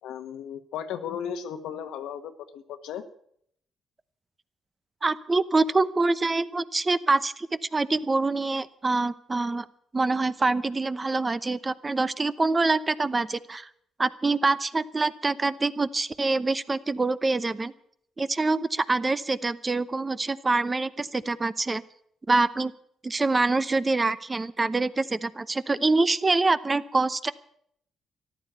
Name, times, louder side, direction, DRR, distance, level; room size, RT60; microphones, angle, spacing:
voice 1, 0.0-3.0, left 8 dB, 85° left, 8 dB, 1.4 m, -35 dB
voice 2, 5.0-9.7 9.9-13.7 14.0-17.7 18.2-21.8 22.3-22.7 23.0-27.3, right 3 dB, 25° right, 15 dB, 0.8 m, -25 dB
14.0 x 12.0 x 8.1 m, 0.67 s
cardioid pair, 90°, 0 cm